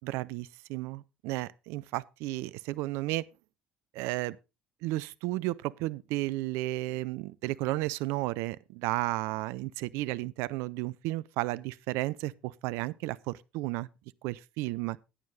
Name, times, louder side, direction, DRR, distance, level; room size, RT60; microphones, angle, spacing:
voice 1, 0.0-3.3 3.9-4.4 4.8-13.9 14.2-15.0, right 18 dB, 65° right, 0.4 m, -33 dB
11.0 x 9.4 x 3.7 m
hypercardioid pair, 60°, 5 cm